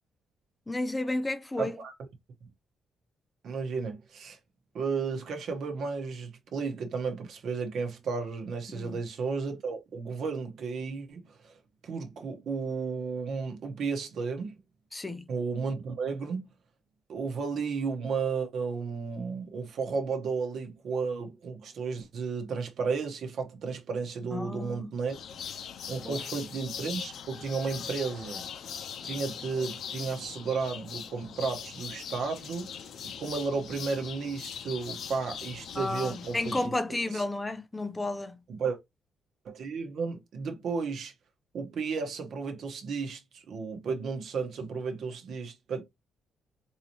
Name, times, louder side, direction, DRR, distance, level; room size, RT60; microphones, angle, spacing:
voice 1, 0.7-1.8 8.7-9.0 14.9-15.2 24.3-24.9 26.0-26.2 35.8-38.4, left 2 dB, 15° left, 0.4 m, -32 dB
voice 2, 1.6-2.1 2.4-2.5 3.4-4.4 4.7-14.6 15.3-16.5 17.1-25.2 25.9-28.4 29.0-36.7 37.1-37.2 38.5-38.8 39.4-41.1 41.5-45.8, right 5 dB, 60° right, 1.0 m, -33 dB
sound 1, 25.1-36.7, left 8 dB, 65° left, 0.5 m, -41 dB
4.0 x 2.8 x 2.9 m
cardioid pair, 125°, 0 cm